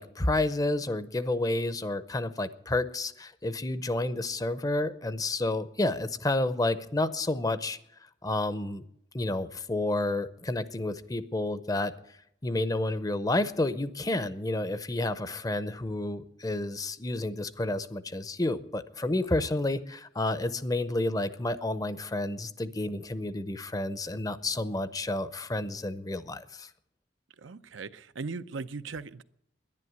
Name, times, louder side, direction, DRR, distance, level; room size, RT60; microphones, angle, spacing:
voice 1, 0.0-7.8 8.2-8.8 9.1-11.9 12.4-26.7, left 2 dB, 20° left, 0.6 m, -30 dB
voice 2, 27.4-29.2, right 4 dB, 85° right, 0.6 m, -38 dB
11.0 x 10.5 x 9.5 m
head